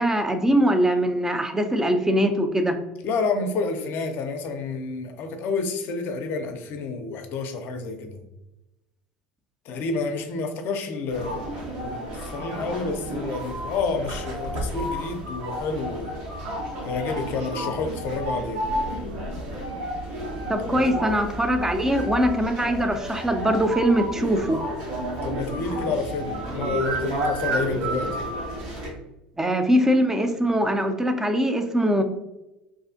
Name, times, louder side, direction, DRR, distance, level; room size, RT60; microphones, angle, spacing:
voice 1, 0.0-2.8 20.5-24.6 29.4-32.0, equal, 10° right, 7 dB, 0.4 m, -22 dB
voice 2, 3.0-8.2 9.7-16.2 16.8-18.7 20.7-20.9 25.2-28.2, left 4 dB, 55° left, 6 dB, 0.4 m, -29 dB
sound 1, 11.1-28.9, right 1 dB, 70° right, 0.9 m, -31 dB
2.5 x 2.3 x 2.5 m, 0.92 s
hypercardioid pair, 75°, 5 cm